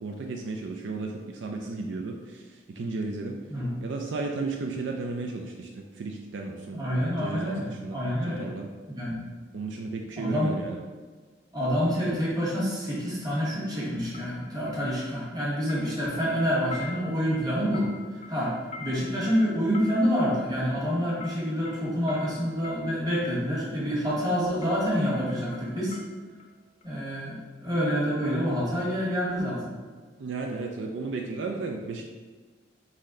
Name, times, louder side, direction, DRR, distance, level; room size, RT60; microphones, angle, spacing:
voice 1, 0.0-3.4 3.8-8.7 9.5-10.8 30.2-32.1, right 3 dB, 70° right, 2 dB, 0.4 m, -34 dB
voice 2, 6.7-8.5 8.9-9.3 10.2-10.5 11.5-17.9 18.3-18.5 18.8-26.0 26.8-29.7, equal, 20° right, -6 dB, 1.4 m, -27 dB
sound 1, 12.3-12.4 14.1-15.4 15.7-23.4 24.1-24.3 24.6-26.5 26.8-26.9, left 4 dB, 40° left, 0.6 m, -46 dB
4.1 x 3.2 x 3.7 m, 1.4 s
head